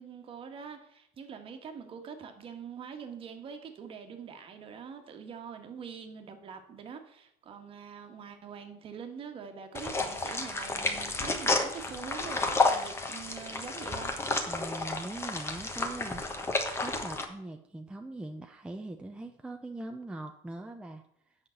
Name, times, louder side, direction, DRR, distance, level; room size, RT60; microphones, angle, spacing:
voice 1, 0.0-14.1, right 6 dB, 40° right, 6 dB, 1.5 m, -44 dB
sound 1, 9.7-17.2, left 3 dB, 15° left, 1.2 m, -31 dB
voice 2, 14.5-16.5 16.8-21.0, right 2 dB, 5° right, 4 dB, 0.6 m, -41 dB
8.2 x 5.9 x 7.7 m, 0.70 s
cardioid pair, 140°, 15 cm